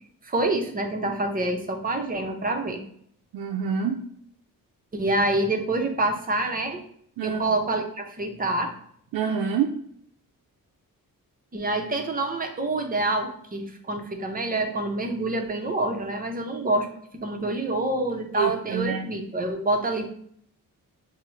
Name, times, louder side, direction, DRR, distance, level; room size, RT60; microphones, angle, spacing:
voice 1, 0.2-2.8 4.9-6.8 7.2-8.8 11.5-16.9 17.2-20.1, right 2 dB, 25° right, 4 dB, 0.5 m, -27 dB
voice 2, 3.3-4.0 7.2-7.4 9.1-9.7 18.4-19.0, right 7 dB, 85° right, 2 dB, 0.5 m, -26 dB
5.7 x 2.0 x 3.1 m, 0.65 s
wide cardioid pair, 130°, 34 cm